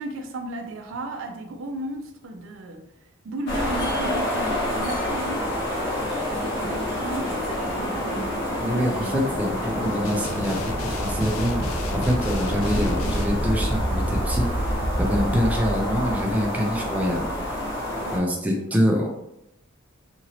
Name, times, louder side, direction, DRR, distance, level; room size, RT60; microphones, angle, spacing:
voice 1, 0.0-2.9 3.2-5.5 6.0-8.3 8.6-9.2 9.6-10.0 15.3-15.5 18.0-18.7, right 1 dB, 70° right, 4 dB, 0.4 m, -35 dB
sound 1, 3.5-18.2, equal, 55° left, 0.8 m, -27 dB
voice 2, 8.6-11.6 11.9-17.3 18.1-19.1, equal, 5° right, -1 dB, 0.4 m, -25 dB
sound 2, 10.0-13.3, left 4 dB, 75° left, 0.4 m, -36 dB
2.9 x 2.7 x 2.8 m, 0.84 s
head